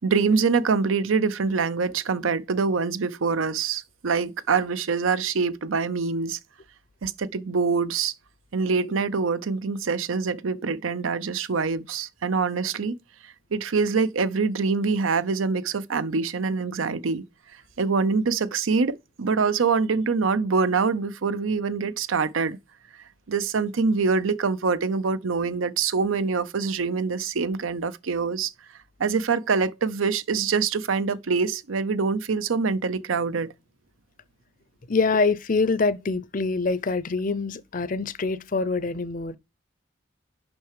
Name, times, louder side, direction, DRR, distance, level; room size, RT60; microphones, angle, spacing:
voice 1, 0.0-6.4 7.0-8.1 8.5-13.0 13.5-17.2 17.8-22.6 23.3-28.5 29.0-33.5, right 5 dB, 80° right, 0.6 m, -25 dB
voice 2, 34.9-39.4, left 3 dB, 40° left, 0.6 m, -25 dB
6.1 x 5.7 x 4.8 m
head